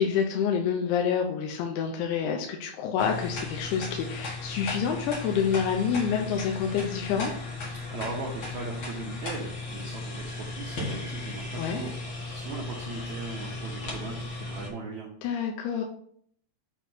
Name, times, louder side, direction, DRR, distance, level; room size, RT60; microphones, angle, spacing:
voice 1, 0.0-7.3 11.6-11.8 15.2-15.8, left 7 dB, 85° left, 2 dB, 2.7 m, -27 dB
sound 1, 3.0-14.7, left 2 dB, 65° left, 1.1 m, -36 dB
voice 2, 7.7-15.1, right 4 dB, 90° right, -1 dB, 1.6 m, -39 dB
7.3 x 2.7 x 5.8 m, 0.63 s
omnidirectional pair, 4.5 m